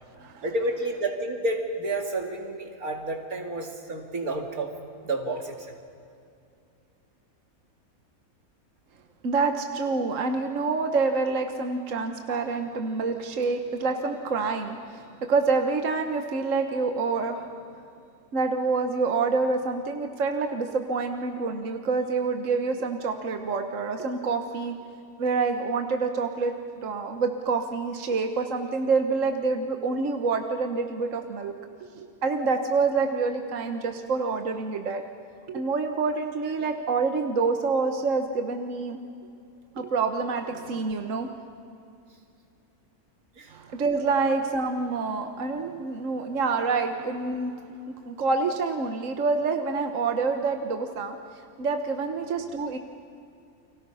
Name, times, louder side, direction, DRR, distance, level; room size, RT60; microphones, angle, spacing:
voice 1, 0.4-4.7 5.0-5.7 43.4-43.5 46.5-46.6, right 2 dB, 90° right, 3 dB, 2.9 m, -30 dB
voice 2, 9.2-17.5 18.3-24.7 25.2-31.5 32.0-35.0 35.5-39.0 39.8-41.3 43.5-47.5 48.1-51.2 51.6-52.8, right 4 dB, 60° right, 5 dB, 1.6 m, -27 dB
30.0 x 24.5 x 5.6 m, 2.5 s
omnidirectional pair, 1.5 m